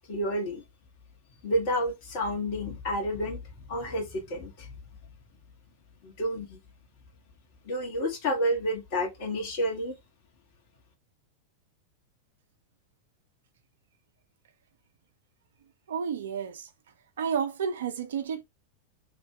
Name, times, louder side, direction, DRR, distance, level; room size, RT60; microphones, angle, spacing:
voice 1, 0.1-0.6 1.4-4.8 6.0-6.6 7.6-10.0, equal, 45° left, 1.7 m, -30 dB
voice 2, 15.9-16.7 17.2-18.4, right 7 dB, 60° right, 0.6 m, -31 dB
3.2 x 2.7 x 3.1 m
figure-of-eight pair, 90°, 0 cm